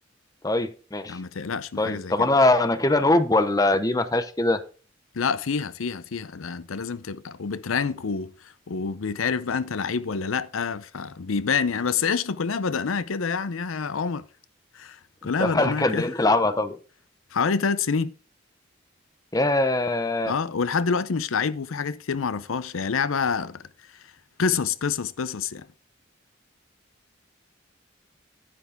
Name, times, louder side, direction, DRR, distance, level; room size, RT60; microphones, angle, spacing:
voice 1, 0.4-1.2 1.8-4.6 15.4-16.8 19.3-20.3, left 2 dB, 20° left, 0.8 m, -22 dB
voice 2, 1.1-2.3 5.1-14.3 14.7-16.1 17.3-18.1 20.3-23.7 24.4-25.7, left 5 dB, 85° left, 0.6 m, -27 dB
9.9 x 8.1 x 3.5 m
head